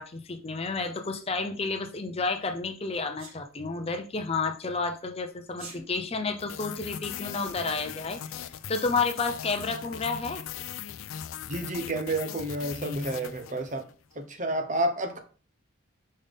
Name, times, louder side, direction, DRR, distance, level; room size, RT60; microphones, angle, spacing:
voice 1, 0.0-10.4, left 4 dB, 30° left, 0.6 m, -31 dB
Sneeze, 3.2-3.4 5.5-5.8, right 3 dB, 85° right, 2.2 m, -44 dB
sound 1, 6.4-13.9, left 9 dB, 80° left, 0.4 m, -39 dB
voice 2, 11.5-13.9 14.2-15.2, right 1 dB, 35° right, 0.9 m, -30 dB
5.6 x 5.3 x 3.6 m
head